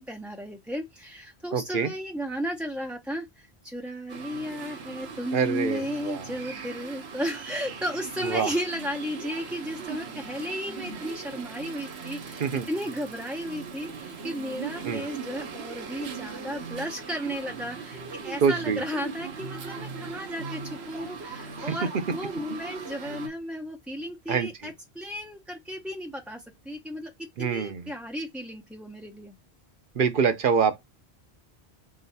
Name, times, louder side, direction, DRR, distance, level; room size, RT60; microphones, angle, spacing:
voice 1, 0.0-29.4, equal, ahead, 0.3 m, -34 dB
voice 2, 1.5-1.9 5.3-6.3 8.2-8.5 12.4-12.7 14.8-15.1 18.4-18.8 21.6-21.8 24.3-24.5 27.4-27.9 29.9-30.8, right 6 dB, 60° right, 0.7 m, -25 dB
sound 1, 4.1-23.3, right 5 dB, 80° right, 1.2 m, -39 dB
3.9 x 3.8 x 2.7 m
omnidirectional pair, 1.1 m